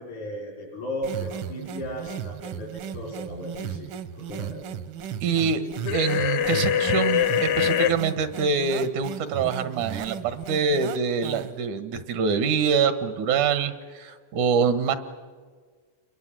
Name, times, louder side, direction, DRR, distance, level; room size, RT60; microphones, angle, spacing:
voice 1, 0.0-4.7, equal, 85° left, -5 dB, 6.0 m, -36 dB
sound 1, 1.0-11.7, right 9 dB, 70° right, 1.2 m, -36 dB
voice 2, 5.2-5.6 5.9-15.0, right 5 dB, 90° right, 11 dB, 2.7 m, -25 dB
sound 2, 5.8-7.9, left 9 dB, 70° left, 1.4 m, -23 dB
29.5 x 22.5 x 7.6 m, 1.6 s
omnidirectional pair, 3.4 m